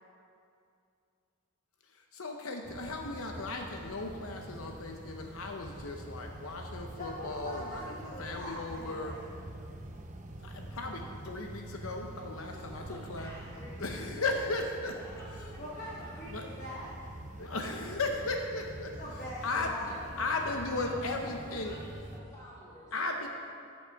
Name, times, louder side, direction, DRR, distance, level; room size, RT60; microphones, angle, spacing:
voice 1, 2.1-7.8 8.2-9.2 10.4-13.3 13.8-14.9 16.3-16.4 17.4-18.9 19.4-19.7 20.2-21.7 22.9-23.3, left 3 dB, 75° left, 3 dB, 0.8 m, -36 dB
sound 1, 2.6-22.2, right 1 dB, 35° right, 0.7 m, -46 dB
voice 2, 6.9-9.3 15.6-16.9 18.8-19.9, left 1 dB, 40° left, -6 dB, 1.3 m, -42 dB
voice 3, 12.5-14.6 14.9-16.3 19.7-22.9, equal, 15° left, -8 dB, 2.9 m, -51 dB
14.0 x 7.3 x 4.7 m, 2.4 s
head